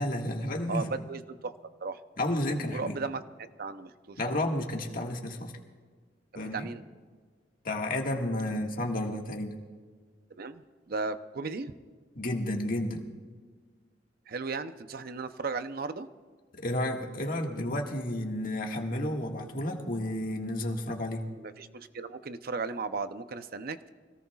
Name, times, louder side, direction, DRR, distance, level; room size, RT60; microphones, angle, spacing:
voice 1, 0.0-0.9 2.2-3.0 4.2-5.5 6.3-6.7 7.6-9.6 12.1-13.0 16.6-21.3, left 1 dB, 50° left, 1 dB, 1.7 m, -31 dB
voice 2, 0.7-1.5 1.8-2.0 2.6-3.2 3.6-4.2 6.3-6.8 8.5-8.6 10.4-11.7 14.3-16.1 21.4-23.9, right 4 dB, 55° right, 11 dB, 0.6 m, -36 dB
25.0 x 18.0 x 2.4 m, 1.5 s
head